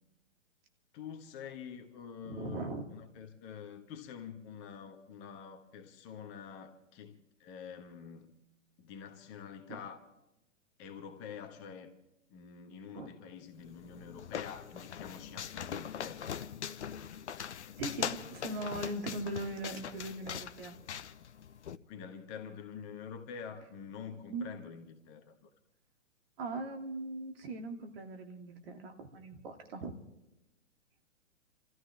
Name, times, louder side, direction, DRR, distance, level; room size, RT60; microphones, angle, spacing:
voice 1, 0.9-8.3 8.8-10.0 10.8-11.9 12.3-16.5 21.9-25.5, left 7 dB, 30° left, 1.6 m, -47 dB
voice 2, 2.2-2.8 9.7-9.8 12.9-13.1 17.8-20.8 24.1-24.4 26.4-29.9, right 2 dB, 50° right, 2.6 m, -40 dB
sound 1, 13.6-21.8, left 9 dB, 60° left, 0.9 m, -41 dB
28.5 x 14.0 x 3.6 m
figure-of-eight pair, 120°, 38 cm